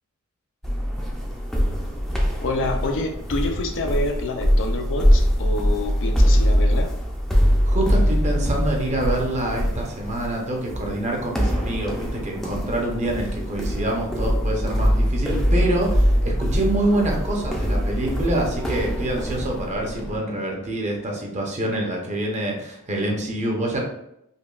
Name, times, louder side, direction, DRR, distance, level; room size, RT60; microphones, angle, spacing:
sound 1, 0.6-20.2, equal, ahead, 0.5 m, -23 dB
voice 1, 2.4-6.9, left 2 dB, 55° left, 4 dB, 0.5 m, -27 dB
voice 2, 7.6-23.8, right 1 dB, 30° right, 0 dB, 0.7 m, -26 dB
5.2 x 2.3 x 2.3 m, 0.80 s
head